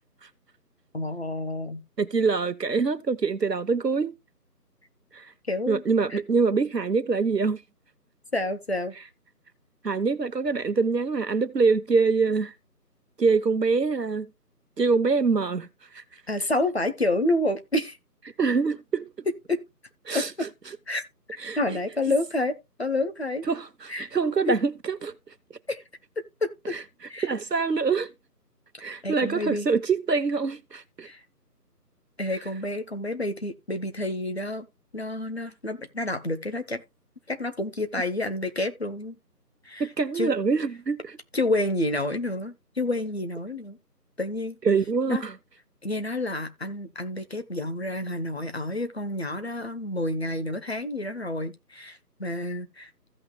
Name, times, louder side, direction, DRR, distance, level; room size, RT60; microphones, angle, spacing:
voice 1, 0.9-1.8 5.5-5.8 6.1-6.2 8.3-8.9 16.3-18.0 19.5-19.6 20.1-20.5 20.9-21.0 21.6-23.4 23.9-24.1 25.7-25.8 26.4-26.8 27.1-27.3 29.0-29.7 31.0-31.2 32.2-34.7 34.9-36.8 37.3-39.2 39.6-39.9 40.1-40.4 41.3-43.8 44.2-44.6 45.1-45.2 45.8-52.9, left 2 dB, 40° left, 1.1 m, -29 dB
voice 2, 2.0-4.1 5.1-5.3 5.7-7.6 9.8-12.5 13.2-14.3 14.8-15.7 15.9-16.0 18.4-19.1 20.1-20.5 21.4-21.6 23.5-25.1 26.7-26.8 27.2-28.1 28.8-31.1 39.8-41.2 44.6-45.4, right 4 dB, 80° right, 1.0 m, -25 dB
15.5 x 5.8 x 2.3 m
figure-of-eight pair, 160°, 49 cm